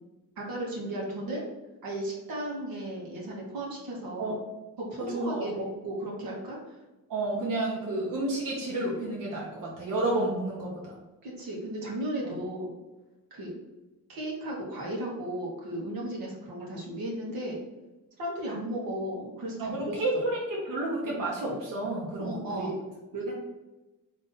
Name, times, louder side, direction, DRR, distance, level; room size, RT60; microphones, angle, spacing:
voice 1, 0.4-1.4 1.8-4.4 4.8-6.8 11.2-12.7 13.3-13.5 14.1-17.6 18.2-20.0 22.2-22.8 23.1-23.3, right 1 dB, 90° right, -3 dB, 1.4 m, -35 dB
voice 2, 5.0-5.5 7.1-10.9 12.2-12.4 19.6-22.7 23.3-23.4, right 2 dB, 65° right, -4 dB, 1.1 m, -31 dB
3.9 x 3.1 x 4.0 m, 1.1 s
cardioid pair, 105°, 34 cm